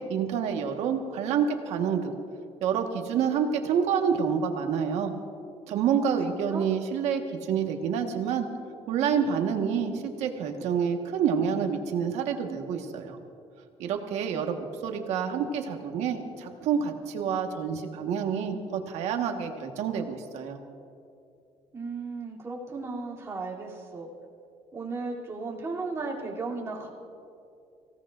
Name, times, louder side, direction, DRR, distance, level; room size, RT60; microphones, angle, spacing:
voice 1, 0.0-2.1 2.6-5.1 5.7-7.2 7.5-8.5 8.9-13.2 13.8-20.6, right 7 dB, 75° right, 4 dB, 1.4 m, -28 dB
voice 2, 6.0-6.7 21.7-24.1 24.7-26.9, right 3 dB, 25° right, -4 dB, 3.0 m, -35 dB
24.5 x 17.0 x 2.5 m, 2.6 s
cardioid pair, 130°, 11 cm